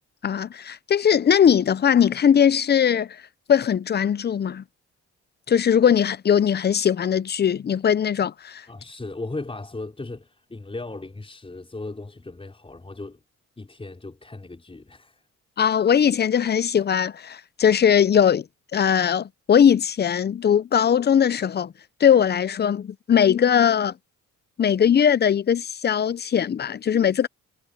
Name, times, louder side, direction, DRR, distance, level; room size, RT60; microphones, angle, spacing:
voice 1, 0.2-3.2 3.5-4.6 5.5-8.6 15.6-18.4 18.7-21.7 22.0-23.9 24.6-27.3, left 8 dB, 35° left, 0.6 m, -20 dB
voice 2, 8.7-13.2 13.6-15.3, left 2 dB, 20° left, 5.1 m, -37 dB
cardioid pair, 90°, 30 cm